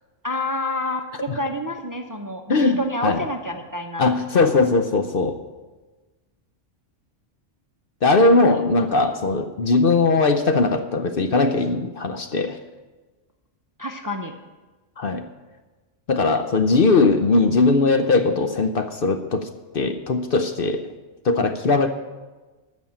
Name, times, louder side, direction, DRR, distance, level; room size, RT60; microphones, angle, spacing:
voice 1, 0.2-4.0 13.8-14.3, left 1 dB, 20° right, 5 dB, 0.7 m, -28 dB
voice 2, 2.5-3.3 4.0-5.4 8.0-12.6 15.0-15.3 16.1-19.5 19.7-20.8 21.2-21.9, left 3 dB, 55° left, 8 dB, 0.8 m, -19 dB
13.0 x 6.3 x 8.7 m, 1.3 s
omnidirectional pair, 1.3 m